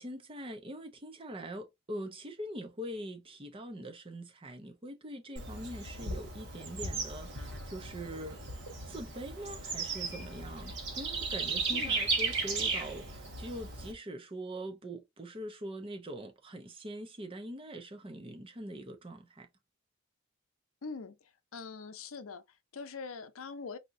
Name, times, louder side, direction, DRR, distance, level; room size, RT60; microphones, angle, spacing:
voice 1, 0.0-8.5 8.9-19.5, right 1 dB, 25° right, 0.7 m, -43 dB
Bird / Insect, 5.4-13.9, right 4 dB, 55° right, 1.4 m, -36 dB
voice 2, 11.7-12.0 20.8-23.8, left 4 dB, 75° left, 0.6 m, -43 dB
4.2 x 2.8 x 2.6 m
head